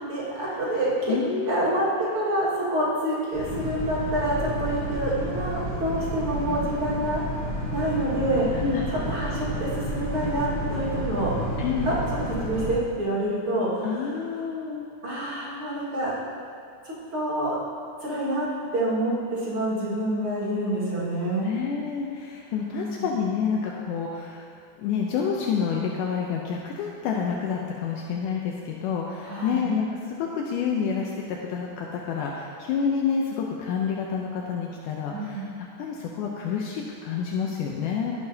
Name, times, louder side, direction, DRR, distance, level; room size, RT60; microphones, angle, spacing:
voice 1, 0.1-1.2 1.5-7.2 7.7-11.3 11.9-14.2 15.0-16.2 16.8-17.6 18.0-18.5 18.7-21.5 22.7-23.1 29.2-29.7 35.1-35.5, right 1 dB, 45° right, -8 dB, 2.2 m, -27 dB
voice 2, 1.1-1.5 8.5-8.9 11.6-11.9 13.8-14.9 21.4-24.4 24.8-38.1, left 6 dB, 75° left, -1 dB, 1.9 m, -28 dB
Boat Water vehicle, 3.3-12.7, equal, 30° left, 0.9 m, -31 dB
17.5 x 6.9 x 2.8 m, 2.3 s
omnidirectional pair, 4.3 m